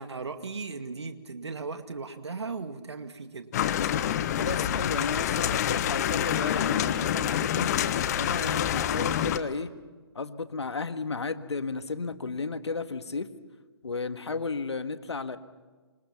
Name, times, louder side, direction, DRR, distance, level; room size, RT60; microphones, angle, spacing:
voice 1, 0.0-3.5, right 4 dB, 80° right, 8 dB, 2.2 m, -37 dB
sound 1, 3.5-9.4, left 10 dB, 35° left, 1.3 m, -27 dB
voice 2, 4.4-7.7 8.2-9.7 10.2-13.3 13.8-15.4, left 4 dB, 80° left, 10 dB, 1.7 m, -33 dB
27.5 x 26.0 x 6.0 m, 1.3 s
figure-of-eight pair, 140°, 14 cm